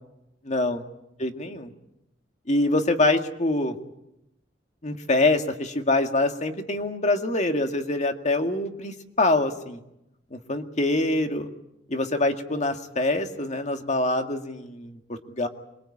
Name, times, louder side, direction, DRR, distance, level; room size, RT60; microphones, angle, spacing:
voice 1, 0.5-0.8 1.2-1.7 2.5-3.8 4.8-9.8 10.3-11.5 11.9-15.5, left 2 dB, 40° left, 6 dB, 1.9 m, -25 dB
26.0 x 22.0 x 8.6 m, 0.88 s
head